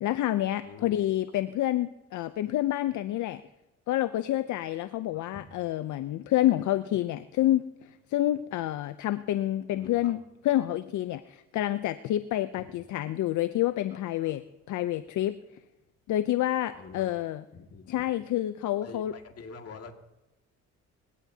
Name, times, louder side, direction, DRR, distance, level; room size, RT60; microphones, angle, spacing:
voice 1, 0.0-3.4 3.9-14.4 14.7-15.3 16.1-17.4 17.9-19.1, left 13 dB, 75° left, 12 dB, 0.6 m, -28 dB
voice 2, 0.6-1.0 5.1-5.5 9.7-10.1 12.5-12.7 13.9-14.3 16.7-17.1 17.5-18.1 18.8-19.9, left 5 dB, 55° left, 4 dB, 2.1 m, -46 dB
23.5 x 16.5 x 2.8 m, 1.0 s
cardioid pair, 90°, 30 cm